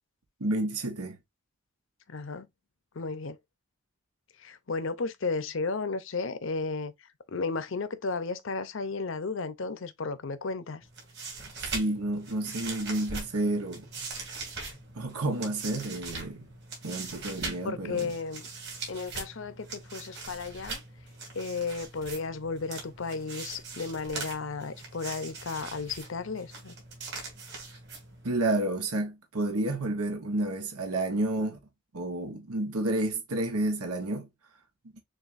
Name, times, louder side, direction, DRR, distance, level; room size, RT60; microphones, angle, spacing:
voice 1, 0.4-1.2 11.6-13.9 14.9-16.5 16.8-18.1 28.2-31.6 31.9-34.3, right 2 dB, 90° right, 1.2 m, -30 dB
voice 2, 2.1-2.5 2.9-3.4 4.4-10.8 17.6-18.5 18.9-20.8 21.3-26.7, left 4 dB, 60° left, 0.6 m, -34 dB
sound 1, 10.8-28.4, right 4 dB, 50° right, 2.2 m, -41 dB
6.5 x 2.6 x 2.5 m
head